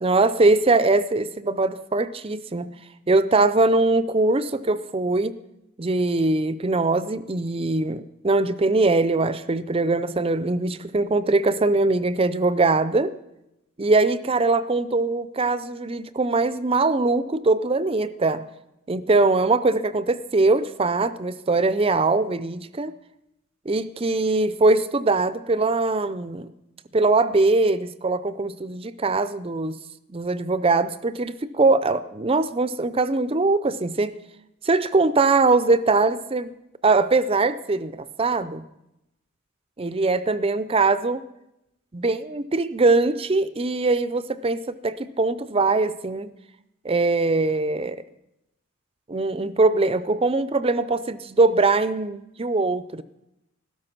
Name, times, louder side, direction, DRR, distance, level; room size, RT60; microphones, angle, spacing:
voice 1, 0.0-2.7 3.1-5.3 5.8-13.1 13.8-18.4 18.9-23.0 23.7-26.5 26.9-29.8 30.1-34.1 34.6-36.5 36.8-38.6 39.8-41.2 41.9-46.3 46.8-48.0 49.1-53.0, right 3 dB, 25° right, 14 dB, 0.5 m, -22 dB
16.0 x 13.0 x 6.0 m, 0.88 s
head